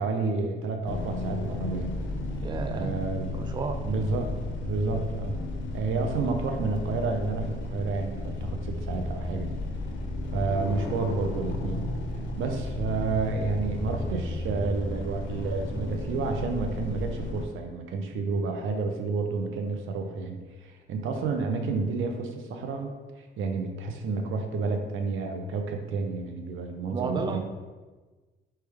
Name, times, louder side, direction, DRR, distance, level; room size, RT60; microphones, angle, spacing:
voice 1, 0.0-1.9 2.7-3.3 3.8-5.4 5.7-9.5 10.3-11.9 12.4-27.4, right 4 dB, 80° right, 4 dB, 0.6 m, -30 dB
sound 1, 0.8-17.4, left 2 dB, 75° left, 0.7 m, -33 dB
voice 2, 2.4-2.9 3.4-3.8 26.9-27.4, right 4 dB, 20° right, 7 dB, 0.4 m, -31 dB
4.4 x 3.3 x 3.4 m, 1.3 s
cardioid pair, 90°, 20 cm